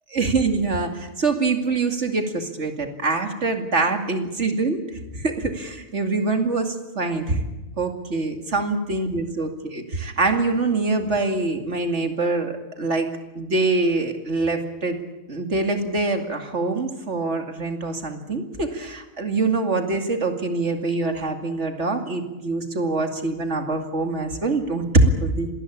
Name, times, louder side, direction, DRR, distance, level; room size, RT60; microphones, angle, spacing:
voice 1, 0.1-4.8 5.1-7.5 7.8-13.1 13.4-15.0 15.3-25.5, right 3 dB, 55° right, 5 dB, 2.7 m, -24 dB
26.0 x 19.5 x 8.6 m, 1.1 s
omnidirectional pair, 1.4 m